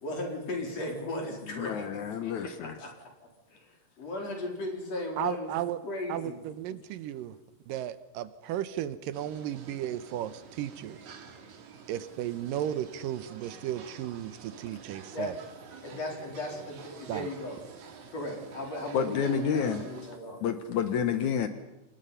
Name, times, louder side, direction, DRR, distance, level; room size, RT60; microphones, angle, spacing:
voice 1, 0.0-2.9 3.5-5.5 5.8-6.4 15.1-15.4 15.8-17.6 18.1-20.4, left 2 dB, 50° left, 1 dB, 5.3 m, -37 dB
voice 2, 1.5-2.8 18.9-19.9 20.4-21.5, left 7 dB, 65° left, 9 dB, 2.3 m, -29 dB
voice 3, 5.2-5.8 6.1-7.4 7.7-11.0 11.9-15.4 17.1-17.3, right 11 dB, 90° right, 14 dB, 2.6 m, -34 dB
sound 1, 9.1-20.2, right 6 dB, 65° right, 3.3 m, -49 dB
27.5 x 20.0 x 5.7 m, 0.95 s
omnidirectional pair, 3.8 m